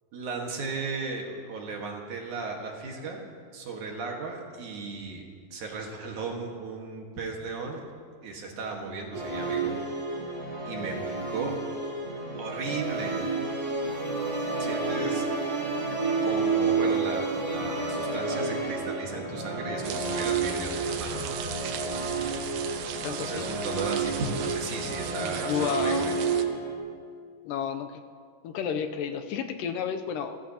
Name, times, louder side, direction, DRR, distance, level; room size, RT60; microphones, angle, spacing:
voice 1, 0.1-3.3 3.5-5.2 5.5-7.8 8.2-9.7 10.7-11.6 12.4-13.2 14.6-15.3 16.2-21.3 23.2-26.1, right 4 dB, 65° right, 0 dB, 3.0 m, -35 dB
Musical instrument, 9.1-26.8, right 4 dB, 25° right, 5.0 m, -30 dB
sound 1, 19.8-26.4, right 9 dB, 90° right, 2.5 m, -37 dB
voice 2, 23.0-23.5 25.2-26.1 27.5-28.0 28.4-30.4, left 7 dB, 80° left, 7 dB, 2.2 m, -31 dB
29.5 x 13.5 x 2.9 m, 2.1 s
omnidirectional pair, 3.9 m